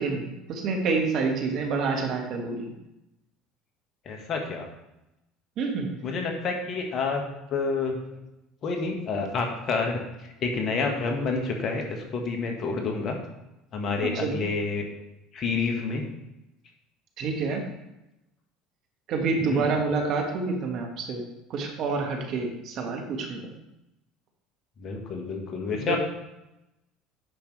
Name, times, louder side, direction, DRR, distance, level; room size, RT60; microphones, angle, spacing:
voice 1, 0.0-2.7 5.6-5.9 14.2-14.4 17.2-17.6 19.1-21.2 21.5-23.5 25.9-26.0, right 4 dB, 55° right, 2 dB, 1.6 m, -28 dB
voice 2, 4.0-4.7 6.0-7.2 7.5-8.0 8.6-13.2 13.7-14.8 15.3-16.1 19.4-19.7 24.8-26.0, left 4 dB, 45° left, 2 dB, 1.6 m, -29 dB
10.0 x 5.3 x 3.3 m, 0.92 s
hypercardioid pair, 70°, 0 cm